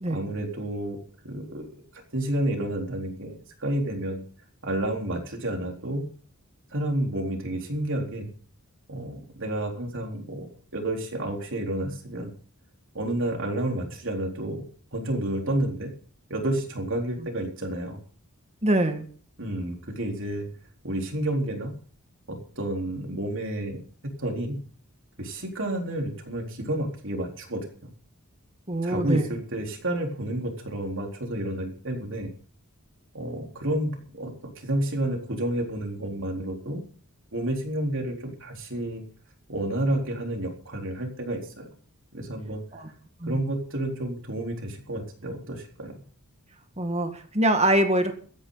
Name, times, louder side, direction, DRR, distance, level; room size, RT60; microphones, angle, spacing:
voice 1, 0.1-1.0 1.2-1.7 2.1-4.2 4.6-6.0 6.7-8.3 8.9-12.3 12.9-14.6 14.9-15.9 16.3-18.0 19.4-20.5 20.8-21.7 22.3-23.8 24.2-24.6 25.2-27.9 28.8-32.3 33.1-36.8 37.3-39.0 39.5-41.7 42.1-42.6 43.3-45.9, right 1 dB, 60° right, 2 dB, 4.0 m, -30 dB
voice 2, 18.6-19.0 28.7-29.3 42.7-42.9 43.2-43.4 46.8-48.1, right 1 dB, 30° right, 7 dB, 1.8 m, -24 dB
17.0 x 13.5 x 4.0 m, 0.44 s
head